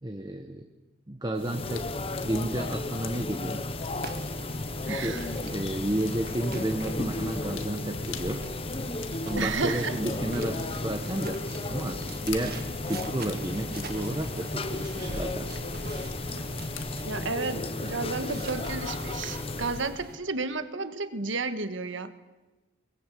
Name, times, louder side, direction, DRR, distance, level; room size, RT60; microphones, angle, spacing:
voice 1, 0.0-0.7 1.1-1.9 2.2-3.7 4.8-5.2 5.5-8.5 9.2-11.4 11.7-15.6, right 1 dB, 20° right, 5 dB, 1.1 m, -32 dB
sound 1, 1.4-20.0, left 2 dB, 30° left, 1.0 m, -34 dB
sound 2, 1.6-17.2, left 4 dB, 70° left, 1.8 m, -45 dB
sound 3, 3.9-20.2, right 3 dB, 50° right, 1.5 m, -44 dB
voice 2, 4.9-5.3 9.4-10.0 17.0-22.1, right 3 dB, 65° right, 11 dB, 1.5 m, -32 dB
22.0 x 21.5 x 8.4 m, 1.1 s
head